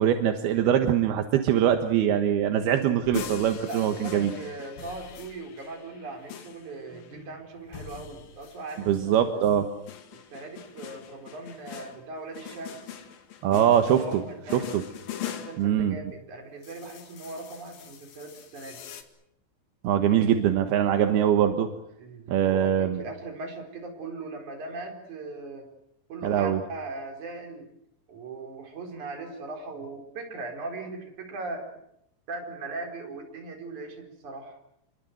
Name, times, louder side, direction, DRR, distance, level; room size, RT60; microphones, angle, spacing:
voice 1, 0.0-4.3 8.9-9.6 13.4-14.2 14.5-14.8 15.6-16.0 19.8-21.7 22.3-23.0 26.2-26.6, right 10 dB, 65° right, 6 dB, 2.7 m, -23 dB
sound 1, 3.0-9.1 9.4-15.7 16.6-19.0, left 9 dB, 55° left, 3.1 m, -42 dB
voice 2, 3.7-9.5 10.1-13.0 13.9-14.7 15.3-18.8 22.0-25.7 26.1-27.7 28.1-31.7 32.3-34.6, right 3 dB, 40° right, 3 dB, 5.4 m, -39 dB
28.0 x 22.5 x 8.0 m, 0.76 s
omnidirectional pair, 5.8 m